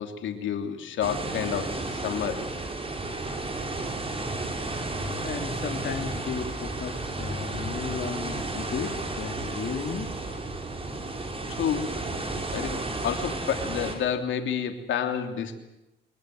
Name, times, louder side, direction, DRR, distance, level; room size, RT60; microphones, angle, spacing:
voice 1, 0.0-2.5 7.6-7.7 11.5-12.0 12.5-15.6, left 8 dB, 75° left, 6 dB, 3.2 m, -30 dB
sound 1, 1.0-14.0, right 2 dB, 30° right, 6.0 m, -33 dB
voice 2, 4.7-10.1, left 6 dB, 55° left, 5 dB, 2.9 m, -35 dB
24.0 x 22.5 x 7.8 m, 0.94 s
cardioid pair, 90°, 20 cm